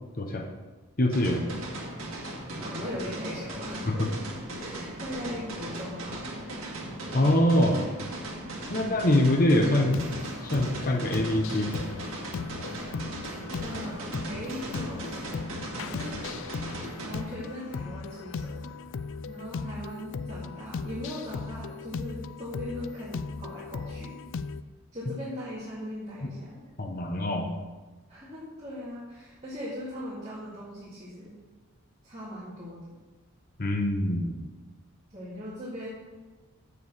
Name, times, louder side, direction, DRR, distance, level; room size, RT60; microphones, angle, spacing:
voice 1, 1.0-1.5 3.9-4.0 7.1-7.8 8.7-10.0 10.5-11.7 26.8-27.5 33.6-34.4, left 1 dB, 40° left, 2 dB, 0.8 m, -24 dB
sound 1, 1.1-17.1, right 1 dB, 65° right, 2.0 m, -38 dB
voice 2, 2.6-4.2 4.6-6.2 8.7-9.0 13.6-15.2 15.7-16.2 17.1-18.8 19.2-24.2 24.9-26.6 28.1-31.3 32.0-32.9 35.1-35.9, equal, 30° right, -9 dB, 2.3 m, -39 dB
sound 2, 9.9-24.6, left 4 dB, 60° left, 0.4 m, -37 dB
7.0 x 6.7 x 7.1 m, 1.3 s
head